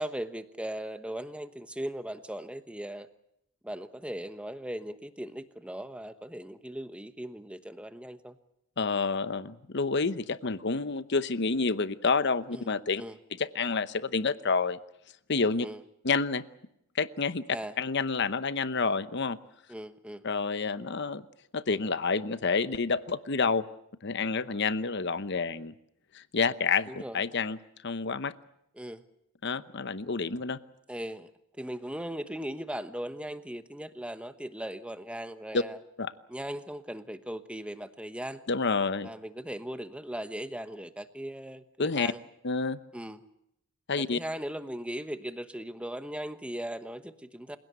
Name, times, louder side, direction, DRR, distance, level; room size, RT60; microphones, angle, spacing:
voice 1, 0.0-3.1 3.6-8.4 12.5-12.7 13.0-13.2 15.6-15.8 17.5-17.8 19.7-20.2 26.9-27.2 28.8-29.0 30.9-31.3 31.6-35.8 36.3-38.4 39.0-42.2 42.9-43.2 44.0-47.6, right 1 dB, 5° right, 10 dB, 1.1 m, -38 dB
voice 2, 8.8-13.0 13.4-14.8 15.3-15.7 16.0-16.4 16.9-17.4 17.8-19.4 20.2-21.2 21.5-23.6 24.0-25.7 26.1-27.6 27.8-28.3 29.4-30.6 35.5-35.6 36.0-36.1 38.5-39.1 41.8-42.1 42.4-42.8 43.9-44.2, left 4 dB, 55° left, 13 dB, 0.9 m, -28 dB
28.5 x 17.0 x 8.1 m, 0.79 s
head